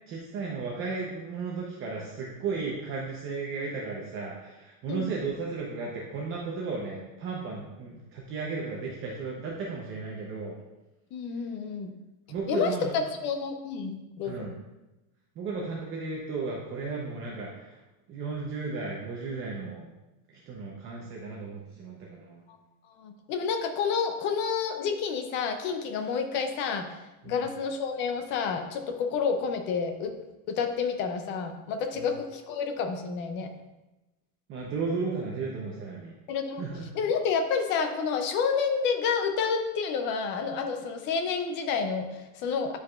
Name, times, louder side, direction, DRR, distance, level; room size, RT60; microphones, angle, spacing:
voice 1, 0.1-10.6 12.3-13.0 14.2-14.6 15.4-17.8 18.1-19.9 20.3-22.4 27.2-27.4 31.9-32.1 34.5-36.1 36.6-36.8, right 4 dB, 30° right, -3 dB, 0.7 m, -34 dB
voice 2, 11.1-11.9 12.5-14.5 23.0-26.9 27.2-30.2 30.5-33.5 36.3-36.6 36.9-42.8, left 5 dB, 25° left, 6 dB, 0.4 m, -29 dB
9.8 x 4.8 x 2.3 m, 1.0 s
supercardioid pair, 160°, 45 cm